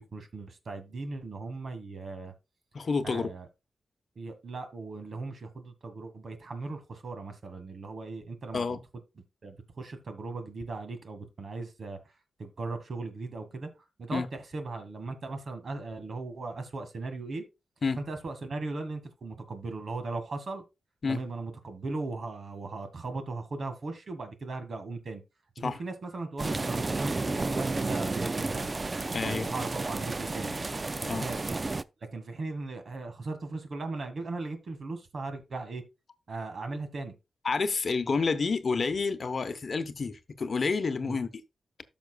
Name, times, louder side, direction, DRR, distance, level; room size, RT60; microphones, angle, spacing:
voice 1, 0.0-2.3 3.0-3.5 4.2-8.8 9.4-12.0 12.4-17.4 18.0-20.6 21.1-25.2 25.6-28.7 29.2-30.6 31.0-31.4 32.1-35.8 36.3-37.1 41.0-41.2, right 3 dB, 60° right, 1.7 m, -38 dB
voice 2, 2.7-3.3 8.5-8.8 14.1-14.3 17.8-18.0 21.0-21.2 25.6-25.8 29.1-29.5 31.1-31.3 37.4-41.4, left 4 dB, 55° left, 0.9 m, -29 dB
sound 1, 26.4-31.8, right 3 dB, 35° right, 0.4 m, -32 dB
13.5 x 5.9 x 2.3 m
cardioid pair, 85°, 0 cm